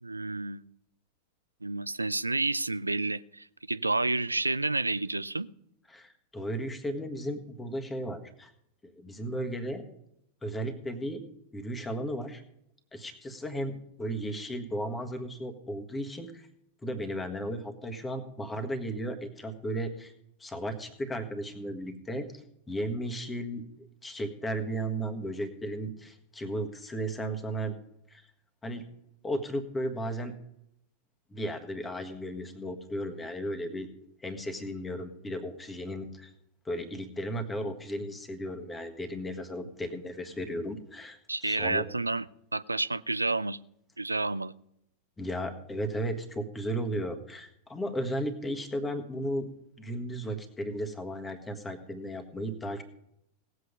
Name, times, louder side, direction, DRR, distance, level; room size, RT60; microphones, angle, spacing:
voice 1, 0.0-0.6 1.6-5.5 41.3-42.2 42.5-43.6 44.0-44.5, right 2 dB, 80° right, 0.4 m, -30 dB
voice 2, 5.9-8.5 8.8-9.8 10.4-11.2 11.5-12.4 12.9-16.5 16.8-20.1 20.4-22.3 22.7-23.6 24.0-27.7 28.1-28.2 28.6-28.9 29.2-30.3 31.3-33.9 34.2-36.3 36.6-41.9 45.2-49.5 49.8-52.8, right 1 dB, 15° left, 1.6 m, -35 dB
18.0 x 8.0 x 5.2 m
figure-of-eight pair, 90°, 0 cm